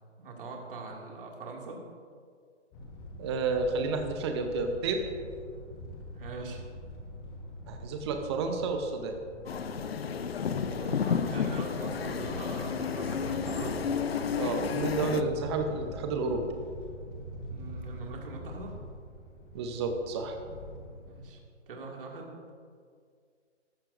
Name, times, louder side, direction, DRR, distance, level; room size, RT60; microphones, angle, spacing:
voice 1, 0.2-1.8 6.1-6.6 10.7-13.8 17.5-18.8 21.1-21.4 21.7-22.3, right 3 dB, 50° right, 0 dB, 2.3 m, -42 dB
sound 1, 2.7-21.3, equal, 20° left, 1.3 m, -44 dB
voice 2, 3.2-5.0 7.7-9.2 14.4-16.5 19.5-20.3, right 4 dB, 25° right, 5 dB, 0.8 m, -31 dB
sound 2, 9.5-15.2, left 7 dB, 55° left, 0.7 m, -31 dB
14.0 x 13.0 x 2.6 m, 2.1 s
figure-of-eight pair, 140°, 36 cm